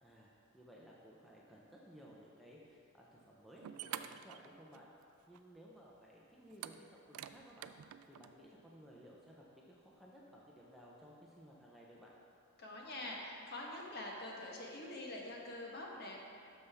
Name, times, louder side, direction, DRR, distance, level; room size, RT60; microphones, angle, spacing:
voice 1, 0.0-4.9 5.3-7.7 8.1-12.1, equal, ahead, -5 dB, 0.6 m, -58 dB
sound 1, 3.2-3.3 3.6-5.0 5.3-5.4 6.5-8.3, right 10 dB, 80° right, 0.3 m, -48 dB
voice 2, 12.6-16.2, left 1 dB, 45° left, -2 dB, 1.2 m, -45 dB
12.0 x 5.5 x 3.5 m, 2.4 s
head